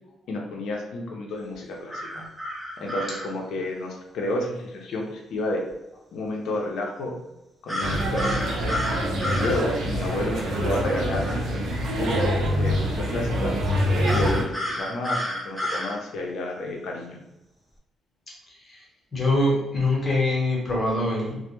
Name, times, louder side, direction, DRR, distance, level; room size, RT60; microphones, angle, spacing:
voice 1, 0.3-2.2 2.8-5.6 6.1-7.2 7.6-8.7 9.3-11.3 11.9-13.6 14.1-17.2, left 1 dB, 75° left, 0 dB, 0.5 m, -31 dB
sound 1, 1.9-3.3 7.7-9.6 14.0-15.9, equal, ahead, 0.5 m, -30 dB
sound 2, 7.8-14.4, equal, 80° right, 0.5 m, -25 dB
voice 2, 19.1-21.4, left 1 dB, 35° left, -3 dB, 0.9 m, -24 dB
2.1 x 2.0 x 2.9 m, 0.92 s
cardioid pair, 90°, 0 cm